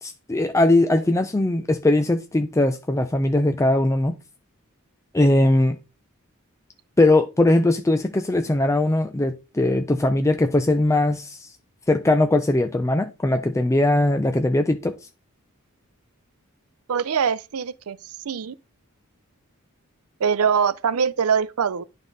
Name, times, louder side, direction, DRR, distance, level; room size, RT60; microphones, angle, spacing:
voice 1, 0.0-4.2 5.1-5.8 7.0-11.5 11.9-15.0, left 2 dB, 15° left, 0.4 m, -20 dB
voice 2, 16.9-18.5 20.2-21.8, right 6 dB, 75° right, 0.5 m, -23 dB
11.0 x 3.7 x 3.9 m
head